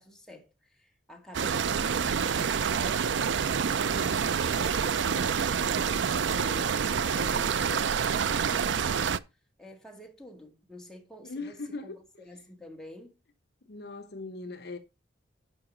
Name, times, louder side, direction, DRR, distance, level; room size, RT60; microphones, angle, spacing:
voice 1, 0.0-3.5 3.9-9.2 9.6-13.2, left 1 dB, 5° left, 1.8 m, -48 dB
sound 1, 1.3-9.2, right 7 dB, 75° right, 0.5 m, -27 dB
voice 2, 11.2-12.0 13.6-14.8, left 3 dB, 60° left, 0.9 m, -39 dB
10.5 x 5.0 x 5.0 m
head